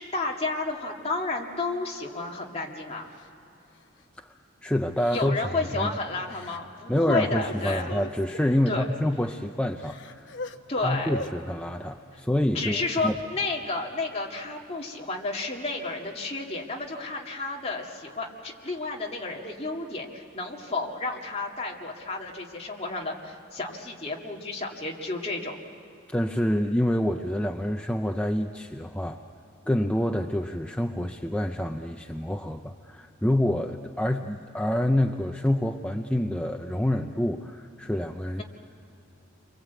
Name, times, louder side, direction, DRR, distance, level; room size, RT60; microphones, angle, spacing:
voice 1, 0.0-3.1 5.1-7.9 8.7-8.9 10.7-11.1 12.5-25.6, left 3 dB, 30° left, -1 dB, 2.2 m, -31 dB
Crying sobbing, 3.2-3.3 3.8-4.0 5.0-5.6 6.3-6.6 6.9-8.6 9.2-9.3 9.6-10.6 11.1-11.3 12.6-13.2, left 2 dB, 65° left, 1.0 m, -40 dB
voice 2, 4.2-5.4 5.8-5.9 6.9-10.4 10.8-13.2 26.1-29.2 29.7-38.4, left 1 dB, 5° left, 4 dB, 0.6 m, -27 dB
29.5 x 23.5 x 8.2 m, 2.9 s
head